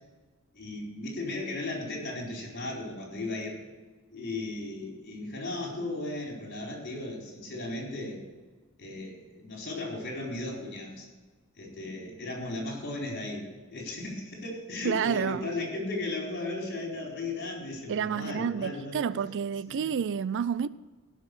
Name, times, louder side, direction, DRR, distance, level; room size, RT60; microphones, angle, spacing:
voice 1, 0.5-3.6 4.1-8.2 8.8-11.1 11.6-13.4 13.7-19.2 19.7-19.9, left 2 dB, 45° left, 4.3 m, -36 dB
voice 2, 14.8-15.5 17.9-20.7, right 7 dB, 55° right, 0.4 m, -29 dB
17.0 x 5.9 x 6.9 m
head